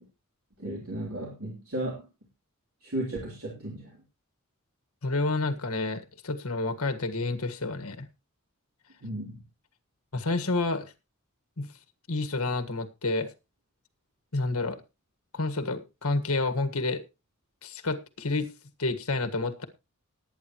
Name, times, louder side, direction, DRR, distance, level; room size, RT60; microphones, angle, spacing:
voice 1, 0.6-2.0 2.8-4.0 9.0-9.4, right 1 dB, 75° right, -2 dB, 3.6 m, -34 dB
voice 2, 5.0-8.1 10.1-10.9 11.6-11.7 12.1-13.3 14.3-14.8 15.3-17.0 17.6-18.5 18.8-19.6, left 3 dB, 70° left, 8 dB, 1.6 m, -29 dB
19.5 x 9.3 x 3.1 m, 0.28 s
head